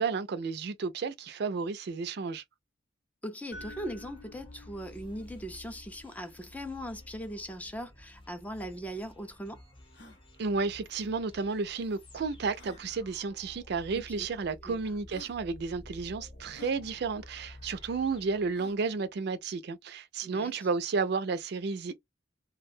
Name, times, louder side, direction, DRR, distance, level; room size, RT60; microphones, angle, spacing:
voice 1, 0.0-2.4 10.4-22.0, right 4 dB, 60° right, 0.4 m, -32 dB
voice 2, 3.2-9.6 13.9-14.3 14.6-14.8 20.2-20.6, equal, 10° left, 0.4 m, -40 dB
sound 1, 3.5-7.6, left 2 dB, 90° left, 1.0 m, -52 dB
sound 2, 3.5-19.1, left 1 dB, 30° left, 0.7 m, -52 dB
sound 3, 8.6-8.7 9.2-9.3 9.8-10.2 11.5-11.6 12.5-12.9 13.8-13.9 14.7-14.8 15.1-15.4 16.5-16.8 18.5-18.9, left 3 dB, 65° left, 0.8 m, -52 dB
2.2 x 2.1 x 2.6 m
head